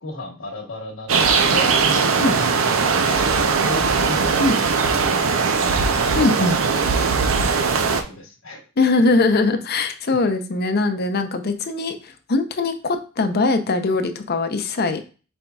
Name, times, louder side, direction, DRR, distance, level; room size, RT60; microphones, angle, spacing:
voice 1, 0.0-6.3 7.2-8.6, left 1 dB, 80° left, -3 dB, 1.2 m, -36 dB
sound 1, 1.1-8.0, right 5 dB, 70° right, 0.5 m, -19 dB
voice 2, 6.2-6.6 8.8-15.0, left 3 dB, 50° left, 7 dB, 0.6 m, -21 dB
5.2 x 4.3 x 2.3 m, 0.36 s
head